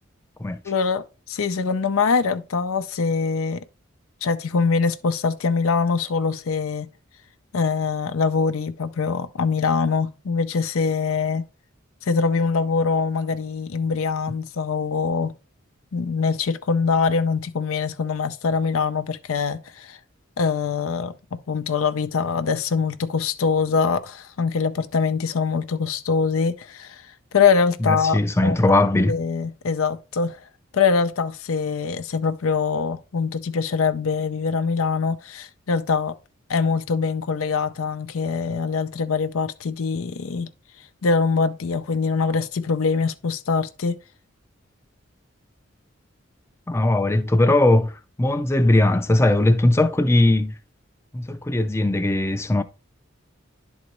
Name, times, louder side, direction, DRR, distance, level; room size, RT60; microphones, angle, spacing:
voice 1, 0.6-3.6 4.2-6.9 7.5-11.4 12.1-15.3 15.9-20.0 20.4-27.1 27.3-28.5 29.1-30.4 30.7-36.2 36.5-40.5 41.0-44.0, left 5 dB, 90° left, 0.5 m, -23 dB
voice 2, 27.8-29.1 46.7-50.5 51.1-52.6, left 1 dB, 15° left, 0.4 m, -19 dB
10.5 x 4.0 x 3.0 m
head